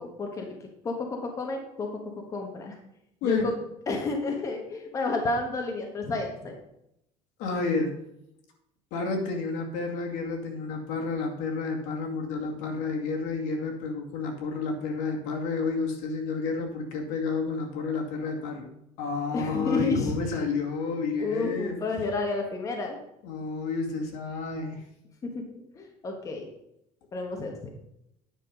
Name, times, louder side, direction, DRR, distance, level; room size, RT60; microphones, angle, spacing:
voice 1, 0.0-1.9 2.3-2.8 3.2-3.5 3.9-6.5 19.3-20.4 21.2-23.0 25.2-25.4 25.7-26.5 27.1-27.7, left 3 dB, 25° left, 2 dB, 1.4 m, -31 dB
voice 2, 7.4-8.0 8.9-18.7 19.0-21.8 23.2-24.8, left 4 dB, 75° left, 2 dB, 2.3 m, -30 dB
9.7 x 6.0 x 5.2 m, 0.81 s
cardioid pair, 165°, 13 cm